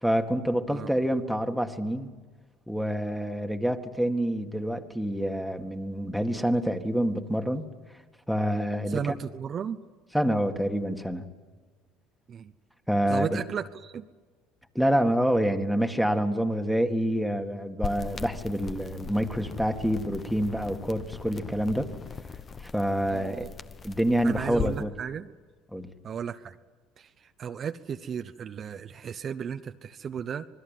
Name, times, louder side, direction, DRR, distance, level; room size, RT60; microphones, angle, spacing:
voice 1, 0.0-2.1 2.7-7.6 8.3-9.0 10.1-11.3 12.9-13.4 14.8-21.9 22.6-23.5 23.8-24.9 25.7-25.9, equal, ahead, 6 dB, 2.0 m, -27 dB
voice 2, 8.9-9.8 12.3-12.5 13.1-14.0 23.1-23.5 24.2-25.3 26.0-26.5 27.0-30.4, right 7 dB, 40° right, 8 dB, 0.9 m, -35 dB
sound 1, 17.8-24.8, left 6 dB, 30° left, 1.1 m, -39 dB
26.0 x 20.5 x 9.3 m, 1.4 s
supercardioid pair, 95°, 0 cm